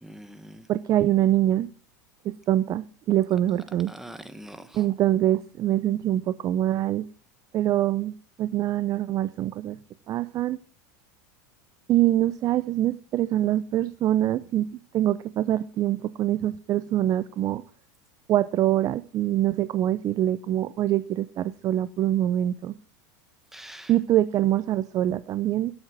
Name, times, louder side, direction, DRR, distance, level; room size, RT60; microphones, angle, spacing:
voice 1, 0.0-0.7 3.9-4.8 23.5-23.9, right 1 dB, 5° right, 1.4 m, -43 dB
voice 2, 0.7-1.7 2.2-3.9 4.7-7.1 7.5-9.8 10.1-10.6 11.9-14.7 14.9-17.6 18.3-22.8 23.9-25.7, right 13 dB, 40° right, 0.6 m, -24 dB
12.5 x 8.0 x 6.0 m
supercardioid pair, 115°, 10 cm